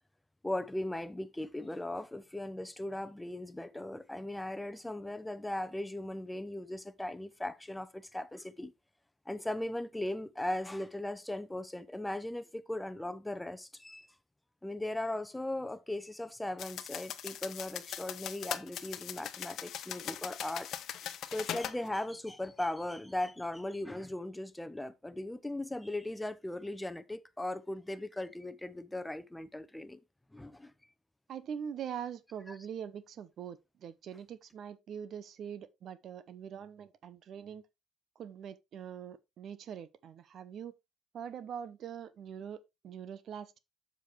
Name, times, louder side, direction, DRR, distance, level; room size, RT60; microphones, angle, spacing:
voice 1, 0.4-8.7 9.3-14.1 14.6-20.7 21.0-30.0 30.3-30.7, left 1 dB, 10° left, 0.8 m, -38 dB
sound 1, 16.6-21.8, left 10 dB, 60° left, 0.8 m, -40 dB
voice 2, 31.3-37.6 38.2-40.7 41.1-43.6, right 8 dB, 60° right, 0.8 m, -43 dB
7.4 x 6.9 x 3.3 m
hypercardioid pair, 60°, 0 cm